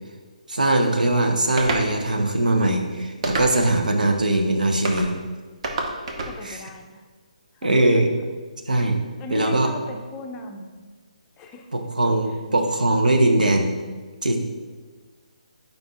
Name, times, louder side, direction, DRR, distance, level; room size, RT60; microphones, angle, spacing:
voice 1, 0.5-5.2 6.4-6.6 7.6-8.1 8.7-9.0 9.3-9.7 11.7-13.7 14.2-14.4, right 1 dB, 85° right, 3 dB, 0.8 m, -21 dB
sound 1, 1.6-1.9 3.2-3.8 4.9-5.1 5.6-6.4, right 2 dB, 50° right, 0.9 m, -27 dB
voice 2, 6.2-7.0 7.5-8.0 9.2-10.9 11.4-11.7, left 3 dB, 20° left, 3 dB, 0.6 m, -38 dB
8.2 x 5.1 x 3.0 m, 1.4 s
figure-of-eight pair, 145°, 4 cm